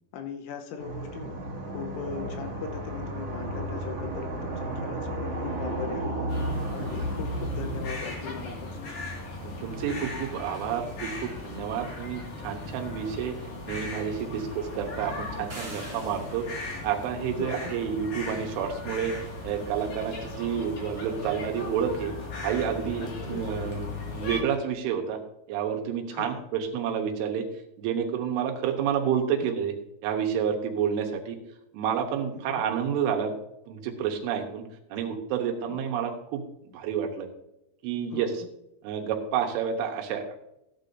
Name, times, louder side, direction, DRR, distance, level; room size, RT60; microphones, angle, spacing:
voice 1, 0.1-1.3 1.7-6.2 6.7-8.7 15.4-15.5 15.7-16.0 17.4-17.7 23.0-23.4 26.1-26.4 32.4-32.6 38.1-38.3, left 7 dB, 80° left, 4 dB, 3.3 m, -39 dB
sound 1, 0.8-7.8, right 1 dB, 45° right, 2.0 m, -33 dB
sound 2, 6.3-24.4, left 2 dB, 50° left, 2.6 m, -38 dB
voice 2, 9.4-13.4 13.7-19.1 19.4-22.1 22.4-25.2 25.5-27.5 27.8-29.7 30.0-31.4 31.7-33.3 33.7-34.6 34.9-36.4 36.7-37.3 37.8-38.4 38.8-40.4, right 8 dB, 75° right, 3 dB, 3.4 m, -29 dB
sound 3, 15.5-16.8, right 2 dB, 25° right, 2.1 m, -44 dB
14.5 x 10.0 x 2.6 m, 0.83 s
omnidirectional pair, 5.9 m